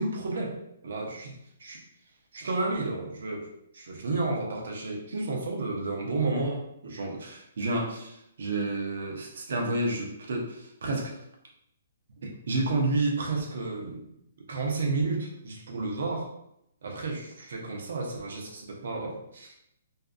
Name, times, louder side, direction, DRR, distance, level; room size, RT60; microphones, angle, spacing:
voice 1, 0.0-1.8 2.3-3.5 3.7-11.1 12.2-14.0 14.5-16.3 16.8-19.5, right 2 dB, 70° right, -1 dB, 0.7 m, -31 dB
2.5 x 2.3 x 2.4 m, 0.77 s
hypercardioid pair, 155°, 0 cm